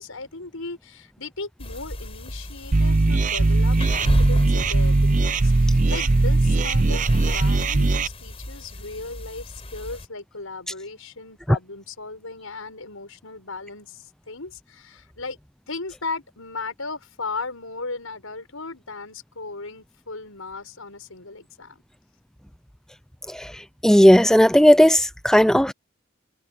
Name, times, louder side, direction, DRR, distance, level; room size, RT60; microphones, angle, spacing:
voice 1, 0.0-15.4 15.7-21.8, left 3 dB, 90° left, 6.2 m, -36 dB
sound 1, 1.6-10.1, left 1 dB, 30° left, 5.0 m, -34 dB
sound 2, 2.7-8.1, right 2 dB, 40° right, 0.6 m, -19 dB
voice 2, 23.8-25.7, equal, 5° left, 0.5 m, -15 dB
open air
head